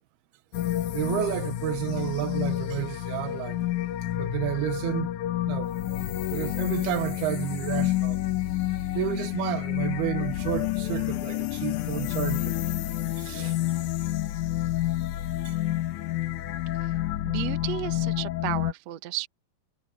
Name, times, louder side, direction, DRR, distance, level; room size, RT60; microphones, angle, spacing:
sound 1, 0.5-18.7, left 14 dB, 70° left, 2.0 m, -29 dB
voice 1, 0.9-3.7 4.2-5.1 5.5-5.7 6.3-8.2 8.9-12.6 13.2-13.6 15.5-15.8, right 14 dB, 90° right, 3.0 m, -31 dB
voice 2, 17.2-19.3, right 16 dB, 70° right, 1.6 m, -33 dB
omnidirectional pair, 4.5 m